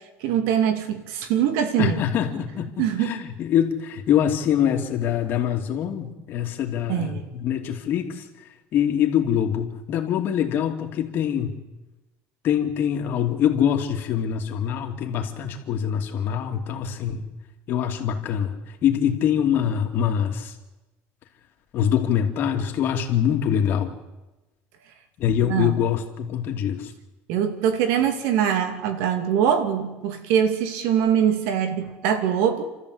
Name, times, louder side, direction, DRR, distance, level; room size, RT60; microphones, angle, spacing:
voice 1, 0.2-1.9 2.8-3.2 6.9-7.3 25.4-25.7 27.3-32.6, right 9 dB, 80° right, 8 dB, 2.6 m, -23 dB
voice 2, 1.8-8.3 8.7-11.6 12.4-17.3 17.7-20.5 21.7-23.9 25.2-26.9, left 9 dB, 50° left, 3 dB, 2.8 m, -24 dB
29.5 x 14.0 x 8.2 m, 1.1 s
cardioid pair, 135°, 5 cm